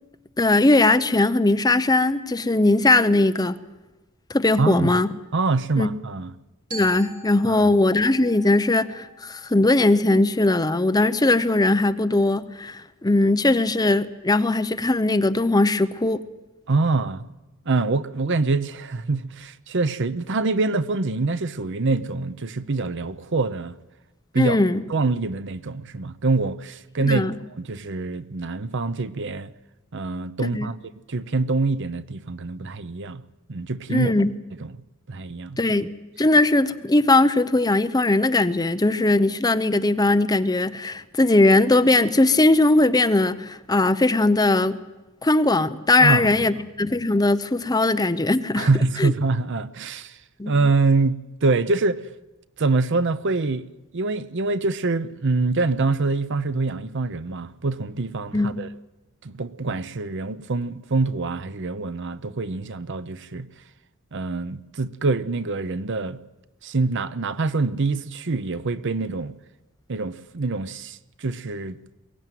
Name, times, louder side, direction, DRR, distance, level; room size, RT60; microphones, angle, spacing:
voice 1, 0.4-3.6 4.3-5.1 5.8-5.9 6.7-16.2 24.3-24.8 27.0-27.4 30.4-30.7 33.9-34.3 35.6-35.9 36.2-44.8 45.2-48.7 49.0-49.1 50.4-50.5 58.3-58.6, left 2 dB, 15° left, 0.7 m, -19 dB
voice 2, 4.6-4.9 5.3-6.3 7.4-7.7 16.7-17.3 17.7-23.8 24.3-24.6 24.9-29.5 29.9-30.8 31.1-33.2 33.5-34.1 34.6-34.8 35.1-35.6 46.0-46.5 48.6-50.2 50.5-52.0 52.6-53.7 53.9-58.7 59.2-63.5 64.1-66.2 66.6-69.4 69.9-71.9, right 3 dB, 55° right, 0.8 m, -25 dB
Glockenspiel, 6.7-10.8, right 2 dB, 75° right, 4.8 m, -45 dB
22.0 x 17.0 x 9.3 m
head